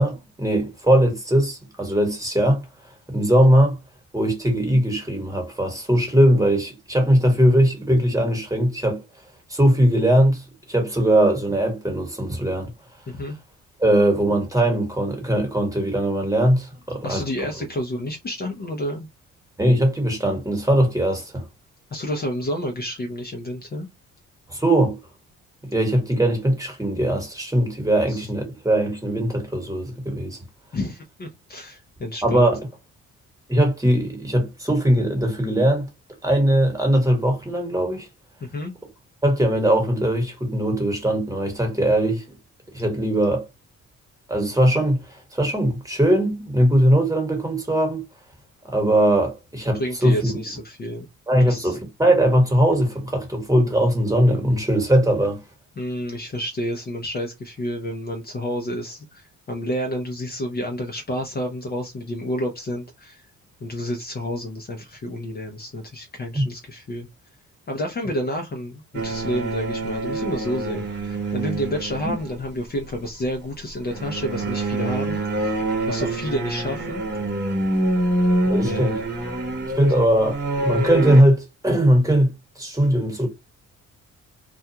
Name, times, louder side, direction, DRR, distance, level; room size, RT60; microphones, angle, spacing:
voice 1, 0.0-2.6 3.1-3.8 4.1-9.0 9.5-12.7 13.8-17.2 19.6-21.5 24.5-25.0 25.6-30.4 32.2-32.6 33.5-35.9 36.2-38.1 39.2-42.2 42.7-43.5 44.3-48.1 48.6-50.4 51.3-55.4 66.3-66.4 78.5-79.0 79.8-83.3, right 1 dB, 10° right, 1.3 m, -20 dB
voice 2, 17.0-19.1 21.9-23.9 28.1-28.3 30.7-32.5 38.4-38.7 49.7-51.1 51.3-51.8 55.8-63.3 63.6-67.1 67.7-75.6 75.9-77.0 78.6-78.9, equal, 30° left, 0.6 m, -30 dB
sound 1, 68.9-72.5 73.8-81.2, right 1 dB, 35° right, 0.9 m, -26 dB
2.3 x 2.3 x 2.8 m
cardioid pair, 90°, 30 cm